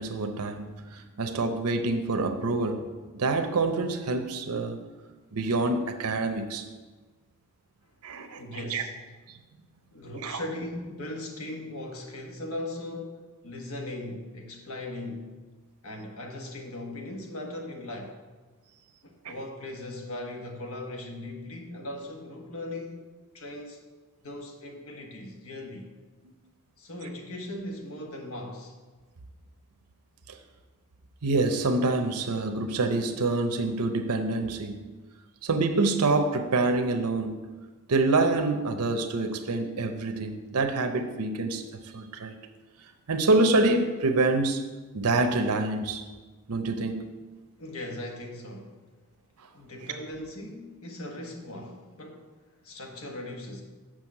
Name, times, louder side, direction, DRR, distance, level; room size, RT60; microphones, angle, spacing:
voice 1, 0.0-4.8 5.3-6.6 8.0-8.8 9.3-9.4 10.2-10.4 19.2-19.3 30.3-30.4 31.2-34.8 35.4-37.4 37.9-42.4 43.1-44.6 44.9-46.1 46.5-47.0, right 3 dB, 85° right, 6 dB, 0.7 m, -26 dB
voice 2, 8.4-8.9 9.9-15.3 15.8-18.2 19.0-23.8 24.2-25.9 26.8-28.8 47.6-48.8 49.5-52.3 52.6-53.6, left 1 dB, 75° left, 2 dB, 1.3 m, -39 dB
6.3 x 6.0 x 7.3 m, 1.3 s
head